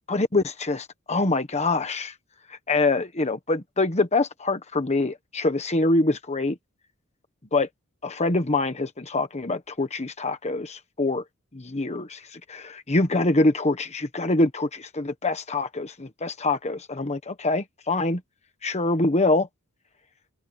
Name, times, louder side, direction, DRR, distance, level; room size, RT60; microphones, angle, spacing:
voice 1, 0.1-2.1 2.5-6.6 7.5-7.7 8.0-11.2 11.5-18.2 18.6-19.5, left 2 dB, 30° left, 1.3 m, -25 dB
open air
head